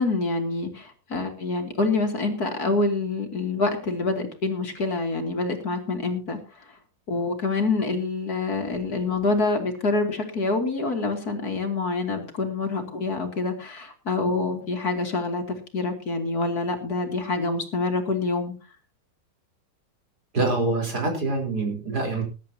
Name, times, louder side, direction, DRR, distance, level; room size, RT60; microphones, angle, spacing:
voice 1, 0.0-6.4 7.1-18.5, left 3 dB, 55° left, 4 dB, 3.0 m, -26 dB
voice 2, 20.3-22.2, right 2 dB, 60° right, 3 dB, 4.6 m, -25 dB
21.0 x 11.0 x 2.9 m, 0.32 s
omnidirectional pair, 1.9 m